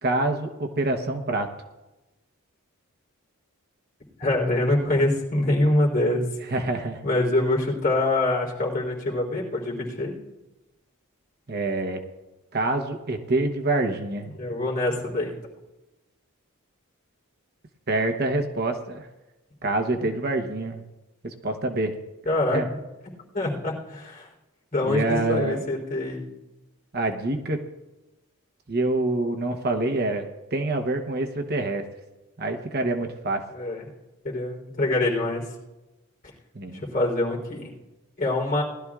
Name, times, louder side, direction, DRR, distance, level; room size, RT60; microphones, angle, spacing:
voice 1, 0.0-1.5 6.5-7.0 11.5-12.0 12.5-14.3 17.9-19.1 19.6-20.8 21.2-21.9 22.5-22.7 24.9-25.6 26.9-27.6 28.7-31.8 32.4-33.4 36.5-36.8, right 2 dB, 45° right, 5 dB, 0.9 m, -26 dB
voice 2, 4.2-6.2 7.0-10.2 14.4-15.3 22.2-22.6 23.3-24.3 24.7-26.2 33.5-33.8 34.2-35.4 36.9-37.7 38.2-38.6, left 2 dB, 40° left, -3 dB, 3.5 m, -24 dB
20.0 x 12.5 x 2.4 m, 1.1 s
head